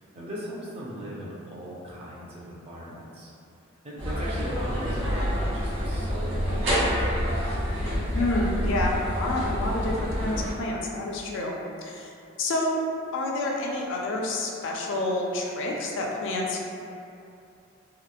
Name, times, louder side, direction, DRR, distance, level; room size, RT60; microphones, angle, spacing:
voice 1, 0.0-3.3 3.8-7.6, equal, 30° right, -6 dB, 0.4 m, -39 dB
sound 1, 4.0-10.5, equal, 65° right, 0.9 m, -27 dB
voice 2, 8.1-11.5 11.8-12.1 12.4-12.8 13.1-16.6, left 2 dB, 65° left, -1 dB, 0.3 m, -28 dB
2.8 x 2.0 x 2.2 m, 2.6 s
head